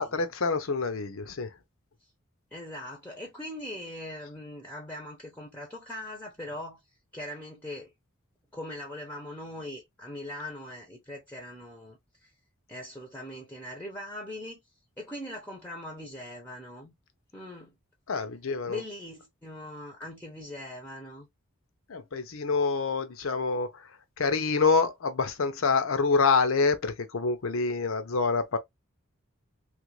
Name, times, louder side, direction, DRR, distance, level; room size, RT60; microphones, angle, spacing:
voice 1, 0.0-1.5 18.1-18.8 21.9-23.8 24.2-28.6, left 4 dB, 70° left, 0.7 m, -26 dB
voice 2, 2.5-6.8 7.1-7.9 8.5-12.3 12.7-14.6 15.0-16.9 17.3-17.8 18.6-21.3, left 1 dB, 10° left, 0.7 m, -41 dB
3.2 x 2.5 x 3.1 m
head